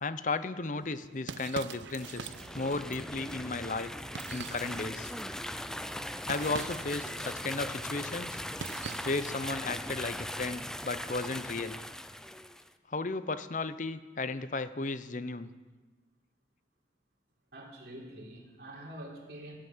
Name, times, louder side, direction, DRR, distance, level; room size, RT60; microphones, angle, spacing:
voice 1, 0.0-3.9 4.3-5.1 6.2-8.4 9.0-11.8 12.9-15.5, left 3 dB, 45° left, 13 dB, 0.7 m, -34 dB
sound 1, 0.8-9.5, right 6 dB, 85° right, 0.5 m, -46 dB
sound 2, 1.9-12.7, left 1 dB, 5° left, 0.4 m, -39 dB
voice 2, 17.5-19.6, right 1 dB, 60° right, -1 dB, 3.7 m, -46 dB
16.5 x 11.5 x 7.3 m, 1.3 s
head